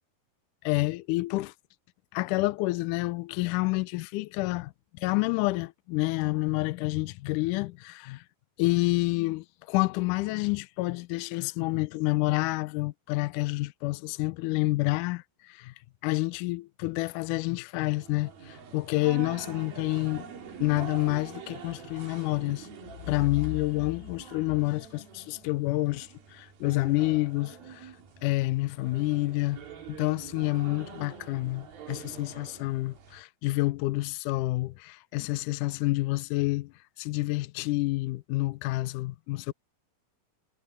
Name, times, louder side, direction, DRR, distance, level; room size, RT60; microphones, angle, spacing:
voice 1, 0.6-1.5 2.1-8.2 8.6-15.7 16.0-20.3 20.6-22.7 23.1-27.9 28.2-29.6 29.9-39.5, left 20 dB, 80° left, 2.0 m, -28 dB
sound 1, 17.8-33.2, right 6 dB, 85° right, 5.1 m, -45 dB
omnidirectional pair, 4.1 m